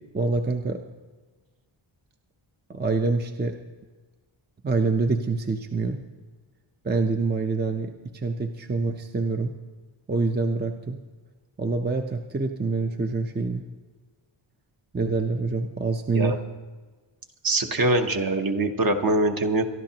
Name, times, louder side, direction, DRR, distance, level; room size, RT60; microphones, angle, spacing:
voice 1, 0.1-0.8 2.7-3.6 4.6-6.0 6.8-9.5 10.1-11.0 11.6-13.6 14.9-16.4, right 3 dB, 20° right, 4 dB, 0.6 m, -26 dB
voice 2, 17.4-19.6, right 2 dB, 45° right, 5 dB, 1.0 m, -23 dB
23.5 x 11.5 x 2.9 m, 1.3 s
wide cardioid pair, 165°, 49 cm